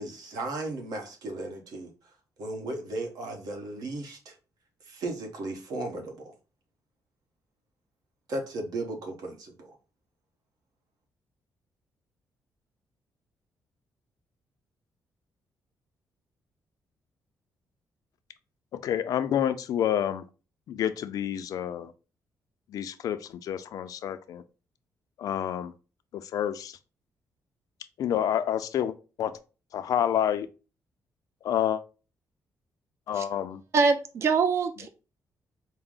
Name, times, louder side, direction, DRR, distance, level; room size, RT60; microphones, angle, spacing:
voice 1, 0.0-1.9 2.4-4.3 4.8-6.3 8.3-9.7, right 2 dB, 70° right, 1.1 m, -35 dB
voice 2, 18.8-20.2 20.7-21.9 22.7-24.4 25.2-25.7 26.1-26.7 28.0-29.3 29.7-30.5 31.4-31.8 33.1-33.6, left 10 dB, 65° left, 0.4 m, -28 dB
voice 3, 33.7-34.9, right 4 dB, 45° right, 0.4 m, -24 dB
4.5 x 2.0 x 3.7 m
cardioid pair, 160°, 7 cm